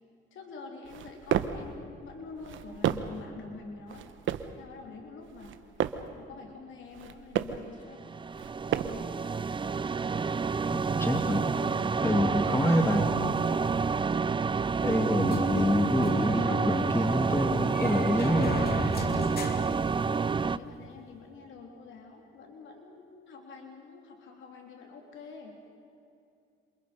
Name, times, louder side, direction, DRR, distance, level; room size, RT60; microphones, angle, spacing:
voice 1, 0.3-4.1 4.6-5.6 6.1-8.0 12.5-12.7 20.0-25.6, left 4 dB, 75° left, 1 dB, 3.7 m, -46 dB
sound 1, 0.9-1.7 2.4-3.2 3.9-4.6 5.3-6.1 6.9-7.7 8.3-9.1, right 10 dB, 75° right, 1.2 m, -32 dB
sound 2, 7.9-20.6, right 5 dB, 25° right, 0.5 m, -29 dB
voice 2, 10.7-11.4 12.0-13.1 14.8-18.6, left 1 dB, 15° left, 3 dB, 2.9 m, -27 dB
sound 3, 15.3-20.5, left 2 dB, 50° left, 2.9 m, -39 dB
28.0 x 27.0 x 5.4 m, 2.5 s
cardioid pair, 90°, 20 cm